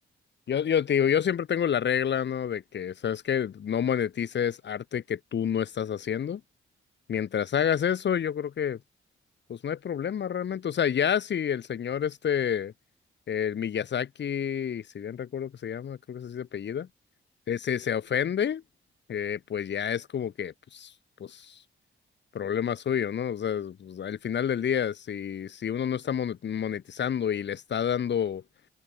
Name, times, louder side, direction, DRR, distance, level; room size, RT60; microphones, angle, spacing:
voice 1, 0.5-6.4 7.1-8.8 9.5-12.7 13.3-16.9 17.5-18.6 19.1-20.9 21.2-21.6 22.3-28.4, left 8 dB, 60° left, 4.0 m, -29 dB
open air
wide cardioid pair, 170°, 21 cm